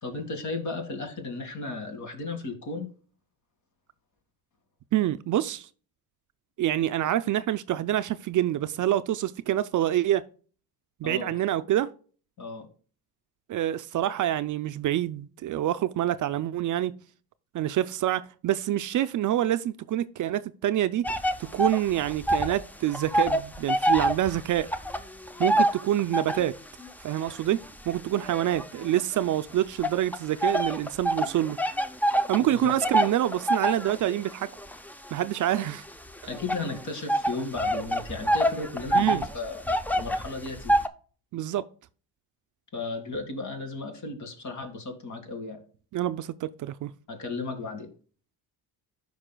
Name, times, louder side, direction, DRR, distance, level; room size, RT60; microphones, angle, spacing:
voice 1, 0.0-2.9 11.0-11.4 12.4-12.7 26.8-26.9 32.4-32.7 36.3-39.6 39.9-40.8 42.7-45.6 47.1-47.9, left 3 dB, 45° left, 2.0 m, -35 dB
voice 2, 4.9-5.7 6.6-10.2 11.0-11.9 13.5-16.9 17.5-21.0 21.4-24.7 25.4-26.5 27.0-27.6 27.9-31.6 32.3-34.5 35.1-35.8 38.9-39.3 41.3-41.6 45.9-46.9, right 12 dB, 50° right, 0.5 m, -26 dB
sound 1, 21.0-22.6 22.9-26.6 27.1-29.2 29.8-40.9, right 1 dB, 5° left, 0.4 m, -27 dB
13.5 x 5.4 x 2.2 m
cardioid pair, 125°, 39 cm